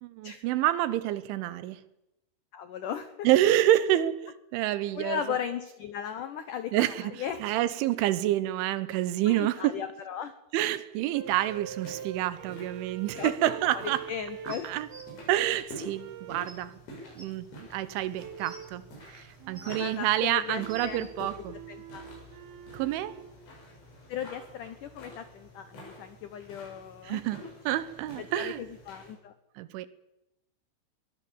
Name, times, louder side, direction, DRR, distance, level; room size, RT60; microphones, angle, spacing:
voice 1, 0.0-1.8 3.3-5.2 6.7-7.1 7.4-9.8 10.5-14.0 14.6-14.9 15.3-16.8 17.2-21.6 22.7-23.2 27.1-28.6 29.6-29.9, right 13 dB, 85° right, 3.5 m, -28 dB
voice 2, 2.5-3.3 4.9-7.5 9.3-10.3 13.1-13.8 14.1-14.7 19.6-21.3 21.7-22.1 24.1-27.5 28.2-29.3, left 8 dB, 90° left, 1.8 m, -37 dB
sound 1, 11.1-15.3 15.9-16.6 18.2-18.8 19.4-23.4, right 9 dB, 65° right, 2.9 m, -45 dB
sound 2, 11.2-29.1, equal, 65° left, 9.8 m, -49 dB
sound 3, 14.5-15.0 16.1-16.2 16.5-16.6 17.2-17.3 18.1-18.7 19.3-19.9 20.4-21.1 22.1-22.2, right 2 dB, 15° right, 3.2 m, -48 dB
23.0 x 19.5 x 7.3 m
omnidirectional pair, 5.4 m